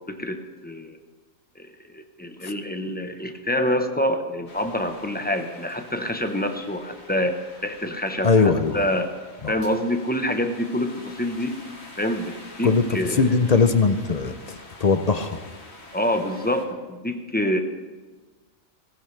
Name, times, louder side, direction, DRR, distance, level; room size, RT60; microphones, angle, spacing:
voice 1, 0.1-0.4 0.6-1.0 1.6-9.1 9.5-11.6 12.0-13.3 15.9-17.6, left 1 dB, 10° left, 6 dB, 0.7 m, -26 dB
sound 1, 4.5-16.6, left 2 dB, 85° left, 2.8 m, -46 dB
voice 2, 8.2-8.8 9.4-9.5 12.6-12.8 13.1-15.4, left 4 dB, 45° left, 9 dB, 0.6 m, -20 dB
18.0 x 15.5 x 3.3 m, 1.4 s
omnidirectional pair, 1.4 m